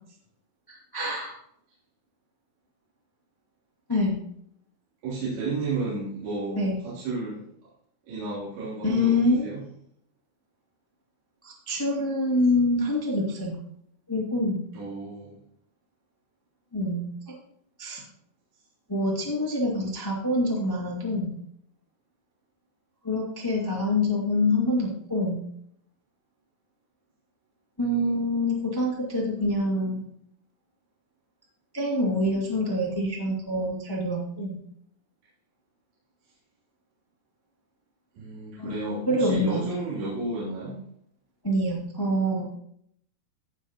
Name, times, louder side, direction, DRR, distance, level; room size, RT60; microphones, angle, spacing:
voice 1, 0.7-1.3 3.9-4.2 6.5-6.8 8.8-9.5 11.4-13.6 14.1-14.6 16.7-17.4 17.8-18.0 18.9-21.3 23.0-25.4 27.8-30.0 31.7-34.6 38.6-39.6 41.4-42.5, left 1 dB, 15° left, -4 dB, 0.9 m, -26 dB
voice 2, 5.0-7.4 8.1-9.6 14.7-15.4 38.2-40.8, right 3 dB, 70° right, -11 dB, 5.4 m, -32 dB
16.0 x 6.6 x 3.0 m, 0.69 s
omnidirectional pair, 4.9 m